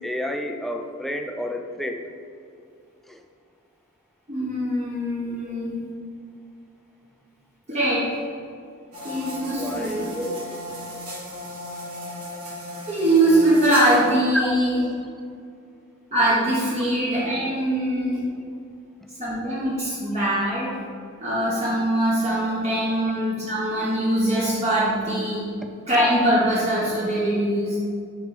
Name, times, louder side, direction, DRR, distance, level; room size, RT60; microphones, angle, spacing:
voice 1, 0.0-2.1 3.1-3.2 9.6-9.9 14.3-14.6 20.1-20.2, equal, ahead, 5 dB, 0.3 m, -30 dB
voice 2, 4.3-5.8 7.7-8.2 9.0-10.2 12.9-14.8 16.1-18.2 19.2-20.7 21.2-25.5 25.9-27.8, right 1 dB, 30° right, -8 dB, 1.0 m, -22 dB
sound 1, 8.9-14.1, equal, 75° right, 1.4 m, -35 dB
6.0 x 3.1 x 5.2 m, 2.4 s
head